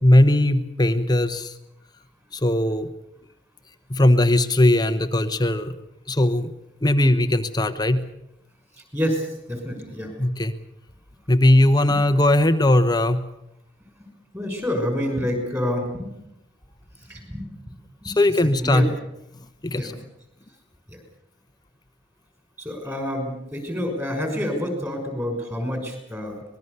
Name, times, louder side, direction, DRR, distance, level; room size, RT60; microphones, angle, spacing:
voice 1, 0.0-1.5 2.3-2.9 3.9-5.7 6.1-6.5 6.8-8.0 10.2-10.5 11.3-13.2 18.0-18.9 19.6-19.9, left 1 dB, 20° left, 9 dB, 1.0 m, -19 dB
voice 2, 8.7-10.1 14.3-16.1 17.0-17.5 18.0-18.2 18.6-18.9 19.8-20.0 20.9-21.0 22.6-26.4, equal, 15° right, 4 dB, 6.0 m, -28 dB
25.0 x 20.5 x 6.8 m, 0.84 s
head